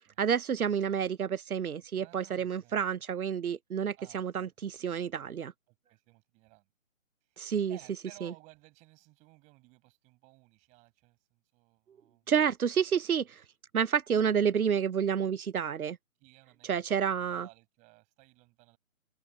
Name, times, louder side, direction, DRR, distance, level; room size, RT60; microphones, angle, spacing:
voice 1, 0.2-5.5 7.4-7.8 8.2-8.3 12.3-13.4 13.7-16.0 16.6-17.5, right 7 dB, 90° right, 0.7 m, -29 dB
voice 2, 2.0-2.8 4.0-4.5 5.7-6.7 7.2-12.3 16.2-18.8, right 24 dB, 15° right, 7.4 m, -58 dB
figure-of-eight pair, 150°, 42 cm